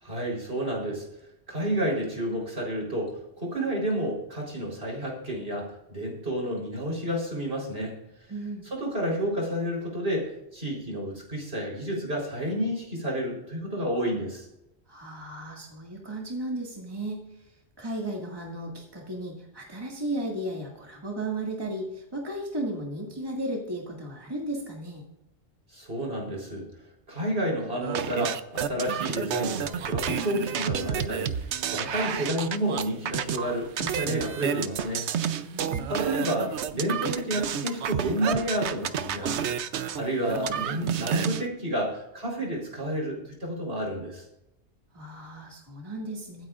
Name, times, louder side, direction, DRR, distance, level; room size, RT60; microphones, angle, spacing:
voice 1, 0.0-1.1 1.5-7.9 8.7-14.5 25.7-26.7 27.1-35.1 35.9-39.5 40.0-44.3, right 1 dB, 60° right, -2 dB, 4.3 m, -30 dB
voice 2, 8.3-8.7 14.9-17.2 17.8-25.0 35.4-35.9 44.9-46.5, right 1 dB, 20° right, -2 dB, 2.0 m, -35 dB
sound 1, 27.8-41.5, right 8 dB, 80° right, 1.0 m, -30 dB
24.0 x 9.2 x 2.5 m, 0.85 s
omnidirectional pair, 1.2 m